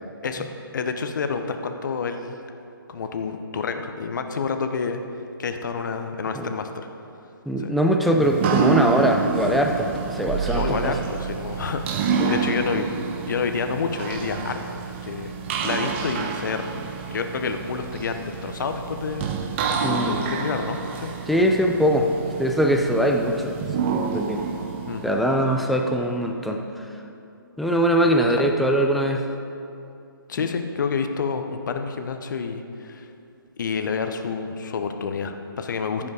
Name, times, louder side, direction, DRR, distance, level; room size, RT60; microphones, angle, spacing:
voice 1, 0.7-2.4 2.9-5.0 5.4-6.9 7.6-7.7 10.5-12.9 13.3-15.3 15.6-16.7 17.1-19.3 20.0-21.1 24.9-25.0 28.3-28.5 30.3-33.1 33.6-36.1, left 5 dB, 55° left, 7 dB, 0.8 m, -28 dB
voice 2, 7.5-11.0 19.8-20.2 21.3-22.1 22.4-24.4 25.0-26.6 27.6-29.3 36.0-36.1, equal, ahead, 2 dB, 0.3 m, -22 dB
sound 1, 8.2-26.0, right 6 dB, 30° right, 0.7 m, -28 dB
14.5 x 5.5 x 4.9 m, 2.6 s
figure-of-eight pair, 145°, 12 cm